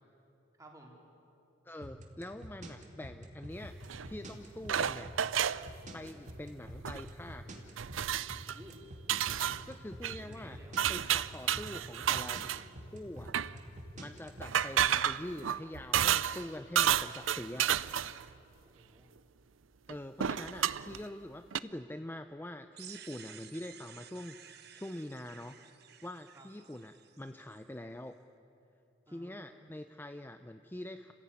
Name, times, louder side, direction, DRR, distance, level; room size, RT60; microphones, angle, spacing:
voice 1, 0.6-0.9 8.5-8.8 10.2-10.8 18.6-19.1 26.3-26.5 29.1-29.7, right 1 dB, 15° right, 0 dB, 3.7 m, -55 dB
voice 2, 1.6-3.8 4.1-5.1 5.9-7.5 9.7-10.6 10.9-12.4 12.9-13.3 13.7-17.7 19.9-25.6 26.0-28.1 29.1-31.1, left 1 dB, 10° left, 8 dB, 0.5 m, -44 dB
sound 1, 1.8-14.6, equal, 40° right, 2.5 m, -46 dB
sound 2, 3.9-4.1 4.7-5.7 6.7-7.1 7.4-7.5 7.8-8.6 9.1-9.6 10.0-10.2 10.8-12.6 13.2-13.5 14.4-16.5 16.8-18.2 19.9-20.0 20.2-21.0 21.5-21.6, right 9 dB, 85° right, 0.6 m, -31 dB
sound 3, 22.8-27.6, right 9 dB, 55° right, 1.3 m, -54 dB
30.0 x 16.0 x 9.7 m, 3.0 s
head